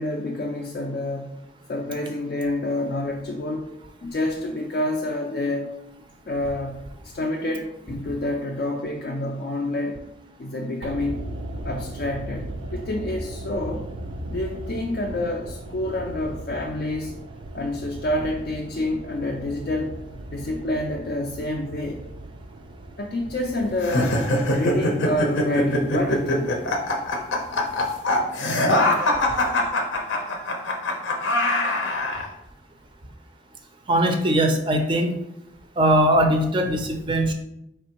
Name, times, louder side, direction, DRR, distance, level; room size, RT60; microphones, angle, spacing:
voice 1, 0.0-1.4 1.7-3.7 4.0-5.7 6.3-10.0 10.4-11.3 11.6-13.9 14.3-17.2 17.5-20.0 20.3-22.0 23.0-26.5 30.2-30.3, left 1 dB, 50° left, 1 dB, 0.3 m, -28 dB
sound 1, 10.8-29.0 29.3-29.4, right 1 dB, 85° right, 0.4 m, -38 dB
sound 2, 23.8-32.3, left 1 dB, 85° left, 0.7 m, -23 dB
voice 2, 33.9-35.1 35.8-37.3, right 1 dB, 25° right, 4 dB, 0.4 m, -20 dB
4.3 x 3.3 x 2.9 m, 0.84 s
head